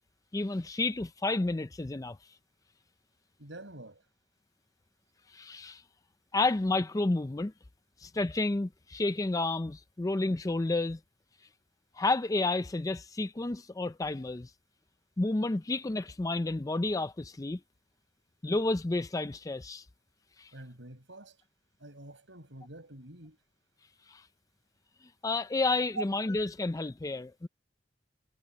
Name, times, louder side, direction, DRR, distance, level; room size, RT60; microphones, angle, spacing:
voice 1, 0.3-2.2 5.3-5.8 6.3-7.5 8.0-11.0 12.0-14.5 15.2-17.6 18.4-19.8 20.4-20.5 24.1-24.2 25.2-27.5, left 2 dB, 20° left, 0.4 m, -30 dB
voice 2, 3.4-4.0 20.5-21.4 21.8-23.4 26.0-26.1, right 2 dB, 85° right, 5.8 m, -44 dB
head